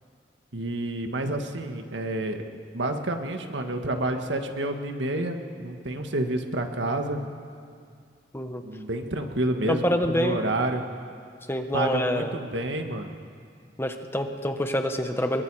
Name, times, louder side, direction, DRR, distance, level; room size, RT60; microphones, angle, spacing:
voice 1, 0.5-2.4 2.7-7.3 8.6-10.8 11.7-13.1, right 1 dB, 85° right, 5 dB, 1.7 m, -29 dB
voice 2, 9.7-10.4 11.5-12.3 13.8-15.4, equal, 15° left, 5 dB, 1.3 m, -26 dB
29.5 x 22.5 x 4.9 m, 2.3 s
head